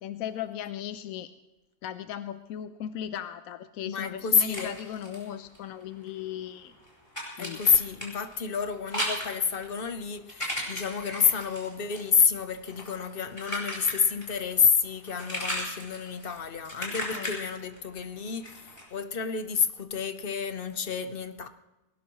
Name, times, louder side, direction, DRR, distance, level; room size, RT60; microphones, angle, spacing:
voice 1, 0.0-1.3 1.8-6.7 7.3-7.6 17.1-17.3, left 10 dB, 65° left, 1.0 m, -37 dB
voice 2, 3.8-4.7 7.4-21.5, left 6 dB, 40° left, 0.9 m, -28 dB
sound 1, 4.1-6.2 6.4-14.6 14.8-18.9, equal, 15° left, 4.9 m, -37 dB
20.5 x 17.5 x 3.1 m
omnidirectional pair, 1.8 m